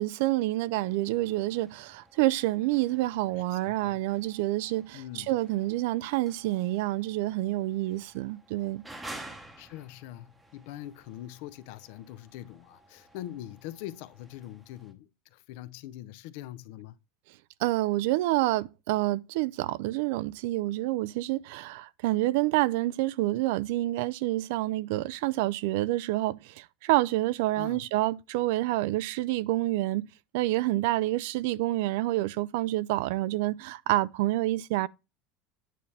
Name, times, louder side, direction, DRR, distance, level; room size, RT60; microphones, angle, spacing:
voice 1, 0.0-5.0 5.3-8.8 17.6-30.1 30.3-34.9, right 17 dB, 65° right, 0.3 m, -28 dB
sound 1, 0.8-14.9, right 1 dB, 5° right, 0.8 m, -51 dB
voice 2, 3.3-4.0 4.9-5.3 9.6-17.0 27.6-27.9, left 13 dB, 60° left, 0.5 m, -43 dB
9.2 x 4.2 x 3.2 m
cardioid pair, 175°, 0 cm